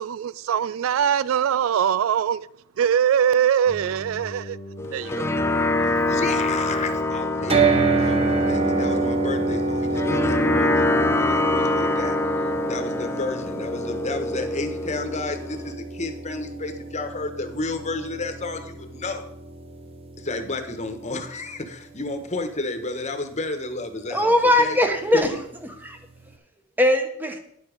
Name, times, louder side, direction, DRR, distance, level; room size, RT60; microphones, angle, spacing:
voice 1, 0.0-2.5 2.8-4.6 4.9-5.3, right 8 dB, 85° right, 0.3 m, -22 dB
Keyboard (musical), 3.7-10.9, left 1 dB, 90° left, 1.1 m, -37 dB
sound 1, 4.8-15.7, left 2 dB, 15° left, 0.5 m, -25 dB
voice 2, 5.8-12.2 12.6-19.2 20.2-24.8 25.1-25.4, left 3 dB, 35° left, 1.2 m, -32 dB
sound 2, 7.5-21.6, right 3 dB, 30° right, 1.0 m, -27 dB
voice 3, 24.1-26.0 26.8-27.4, left 1 dB, 10° right, 1.2 m, -21 dB
10.5 x 7.0 x 5.1 m
head